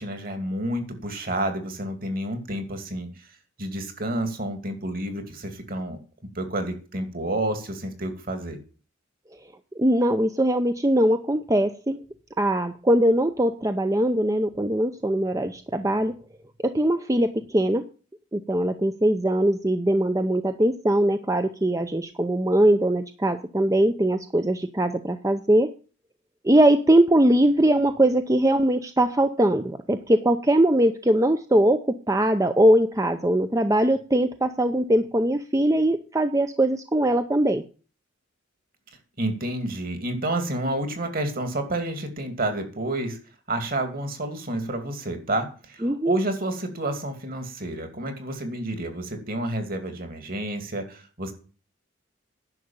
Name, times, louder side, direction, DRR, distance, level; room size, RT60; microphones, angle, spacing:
voice 1, 0.0-3.1 3.6-6.0 6.3-8.6 39.2-43.2 43.5-51.3, right 1 dB, 45° right, 7 dB, 2.6 m, -29 dB
voice 2, 9.8-12.0 12.4-16.1 16.6-17.9 18.3-25.7 26.4-37.6 45.8-46.2, right 1 dB, 15° right, 8 dB, 0.6 m, -21 dB
10.5 x 6.6 x 8.8 m, 0.37 s
head